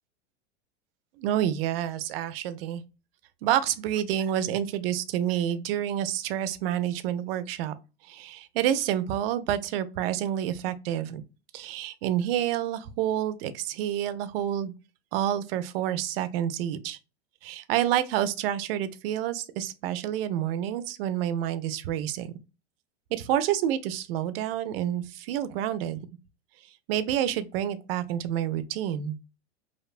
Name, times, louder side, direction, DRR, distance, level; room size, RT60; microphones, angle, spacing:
voice 1, 1.2-2.8 3.4-7.8 8.1-11.2 11.5-14.7 15.1-17.0 17.4-22.3 23.1-26.0 26.9-29.2, right 11 dB, 60° right, 0.4 m, -28 dB
2.8 x 2.1 x 2.3 m
hypercardioid pair, 120°, 35 cm